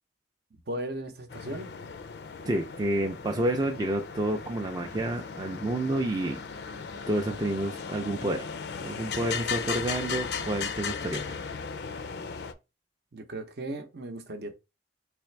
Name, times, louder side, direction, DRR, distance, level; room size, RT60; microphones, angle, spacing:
voice 1, 0.7-1.7 13.1-14.6, right 1 dB, 60° right, 0.7 m, -36 dB
sound 1, 1.3-12.5, left 6 dB, 65° left, 0.4 m, -37 dB
voice 2, 2.5-6.4 7.1-8.4 8.8-11.2, right 1 dB, 20° right, 0.4 m, -29 dB
3.4 x 3.3 x 3.2 m
head